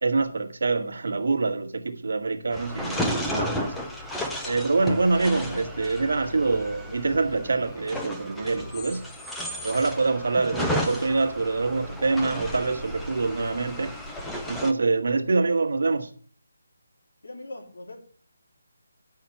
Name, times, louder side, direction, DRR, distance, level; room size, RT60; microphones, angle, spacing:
voice 1, 0.0-3.7 4.4-9.1 9.6-13.9 14.5-16.1, right 3 dB, 55° right, 1.3 m, -25 dB
sound 1, 2.5-14.7, equal, ahead, 0.5 m, -33 dB
voice 2, 17.2-18.0, left 2 dB, 80° left, 3.8 m, -40 dB
9.1 x 5.8 x 7.0 m
hypercardioid pair, 175°, 0 cm